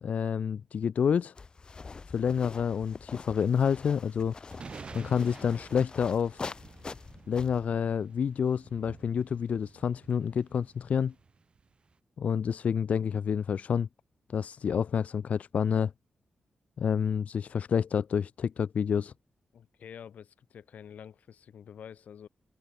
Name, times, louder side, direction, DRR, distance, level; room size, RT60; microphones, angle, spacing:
voice 1, 0.0-1.3 2.1-4.3 4.9-6.4 7.3-11.1 12.2-13.9 14.3-15.9 16.8-19.1, left 7 dB, 65° left, 1.0 m, -28 dB
sound 1, 1.4-7.7, left 4 dB, 35° left, 1.4 m, -44 dB
sound 2, 3.4-11.9, right 5 dB, 45° right, 6.6 m, -51 dB
voice 2, 19.5-22.3, left 8 dB, 80° left, 2.6 m, -48 dB
open air
wide cardioid pair, 135°, 3 cm